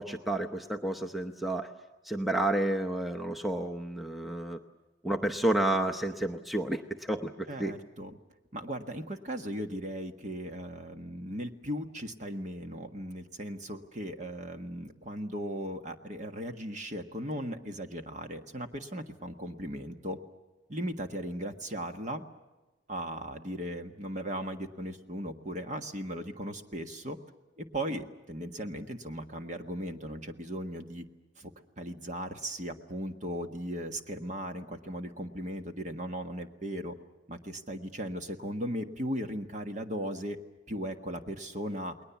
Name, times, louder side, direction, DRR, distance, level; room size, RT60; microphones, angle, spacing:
voice 1, 0.0-1.7 2.0-4.6 5.0-7.8, right 1 dB, ahead, 3 dB, 0.8 m, -30 dB
voice 2, 7.5-8.2 8.5-20.2 20.7-22.2 22.9-27.2 27.6-31.0 31.4-31.5 31.8-36.9 37.3-40.4 40.7-41.9, equal, 40° right, 5 dB, 1.5 m, -37 dB
29.5 x 20.5 x 7.1 m, 1.1 s
head